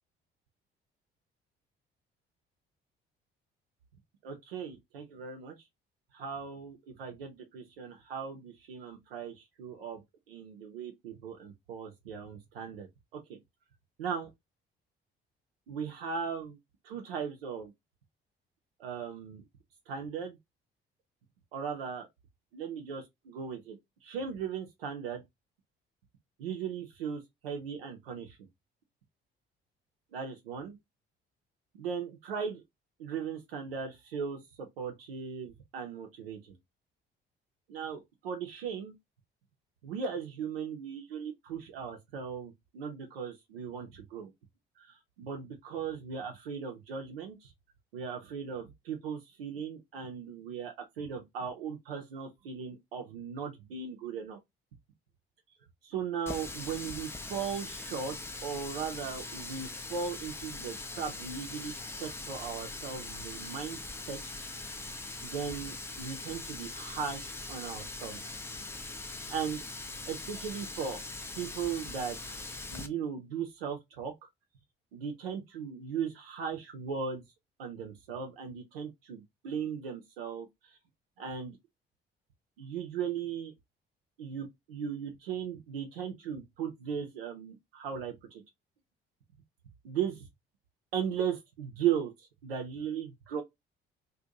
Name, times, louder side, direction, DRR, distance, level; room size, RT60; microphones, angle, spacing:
voice 1, 4.2-5.6 6.1-10.0 10.3-13.4 14.0-14.3 15.7-16.6 16.8-17.7 18.8-19.4 19.9-20.4 21.5-22.1 22.5-25.2 26.4-28.4 30.1-30.8 31.7-32.6 33.0-36.6 37.7-38.9 39.8-44.3 44.8-47.5 47.9-54.4 55.8-58.2 58.4-61.7 62.0-63.8 64.1-64.7 65.2-68.2 69.3-69.6 70.1-71.0 71.4-72.4 72.7-74.1 74.9-77.2 77.6-80.8 81.2-81.6 82.6-83.5 84.2-88.4 89.8-90.2 90.9-93.4, right 7 dB, 75° right, 0.5 m, -37 dB
Water tap faucet, 56.3-72.9, left 3 dB, 10° left, 0.3 m, -41 dB
2.5 x 2.1 x 2.6 m
figure-of-eight pair, 50°, 29 cm